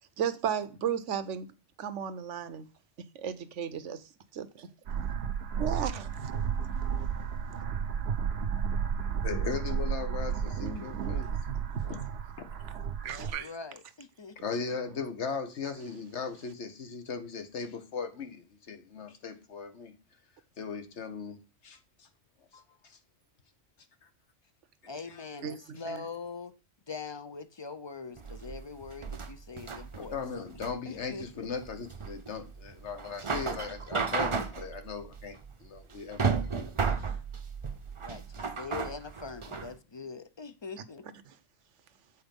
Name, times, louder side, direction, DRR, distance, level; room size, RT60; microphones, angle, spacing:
voice 1, 0.2-1.5 1.8-2.7 3.0-4.0 4.3-4.7 5.6-6.3 10.6-11.2 13.0-13.5 25.4-26.0, right 8 dB, 85° right, 1.1 m, -35 dB
sound 1, 4.9-13.3, right 7 dB, 65° right, 1.0 m, -32 dB
voice 2, 9.2-11.3 11.8-12.0 12.4-12.5 14.4-19.9 20.6-21.4 21.6-22.1 22.8-23.0 25.1-25.2 29.9-36.7 37.0-37.1, left 5 dB, 70° left, 1.5 m, -38 dB
voice 3, 13.0-14.4 22.5-22.6 24.9-26.5 26.9-30.5 30.8-31.5 38.0-41.1, left 4 dB, 35° left, 0.4 m, -43 dB
sound 2, 28.2-39.7, right 5 dB, 30° right, 0.6 m, -34 dB
8.2 x 4.4 x 5.2 m
omnidirectional pair, 1.2 m